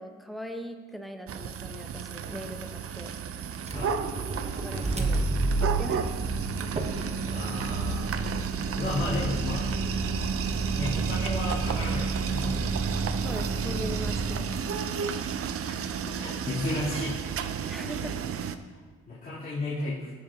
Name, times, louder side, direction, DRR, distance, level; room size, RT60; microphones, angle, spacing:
voice 1, 0.0-3.1 4.6-5.2 5.5-6.2 13.2-14.7 17.7-18.2, equal, ahead, 4 dB, 1.1 m, -39 dB
sound 1, 1.3-18.6, right 7 dB, 50° right, 0.6 m, -32 dB
Motor vehicle (road), 3.6-14.8, right 2 dB, 20° right, 1.1 m, -31 dB
voice 2, 3.7-4.0 7.2-8.2 8.7-9.7 10.7-12.8 15.6-17.5 19.1-20.1, left 2 dB, 30° left, -12 dB, 3.4 m, -34 dB
19.5 x 6.6 x 2.9 m, 1.5 s
cardioid pair, 90°, 30 cm